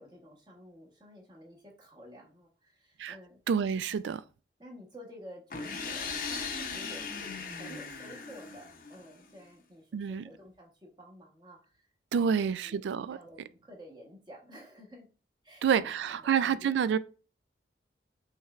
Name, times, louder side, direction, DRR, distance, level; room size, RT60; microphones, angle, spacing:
voice 1, 0.0-3.4 3.9-4.0 4.6-11.9 12.2-15.1 15.4-16.7, equal, 25° right, 1.1 m, -51 dB
voice 2, 3.5-4.2 9.9-10.2 12.1-13.2 15.6-17.0, right 7 dB, 85° right, 0.3 m, -28 dB
sound 1, 5.5-9.3, left 5 dB, 50° left, 0.6 m, -38 dB
5.5 x 3.2 x 2.4 m
head